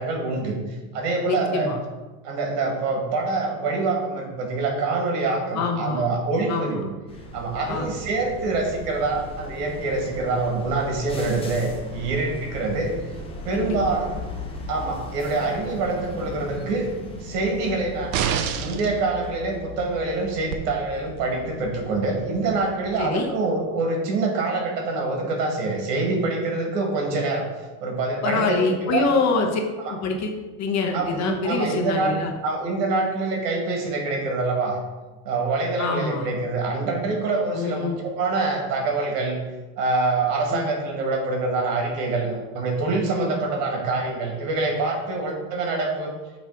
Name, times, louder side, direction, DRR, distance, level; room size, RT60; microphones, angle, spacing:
voice 1, 0.0-1.7 2.2-6.9 7.3-12.9 13.4-14.1 14.7-16.9 17.2-18.2 18.5-27.5 27.8-29.0 29.8-29.9 30.9-32.2 32.4-34.8 35.3-39.4 39.8-46.1, right 3 dB, 85° right, 1 dB, 2.0 m, -25 dB
voice 2, 1.2-1.8 5.5-6.1 6.5-6.8 7.7-7.9 13.5-13.9 23.0-23.3 28.2-29.6 29.9-32.3 35.8-36.3 37.5-38.0 40.5-40.7 43.2-43.3, left 4 dB, 35° left, 2 dB, 1.0 m, -25 dB
sound 1, 7.1-23.1, left 2 dB, 10° left, 0.9 m, -38 dB
sound 2, 18.1-18.9 20.5-20.6, right 9 dB, 50° right, 0.6 m, -25 dB
8.4 x 3.3 x 4.6 m, 1.2 s
supercardioid pair, 140°, 47 cm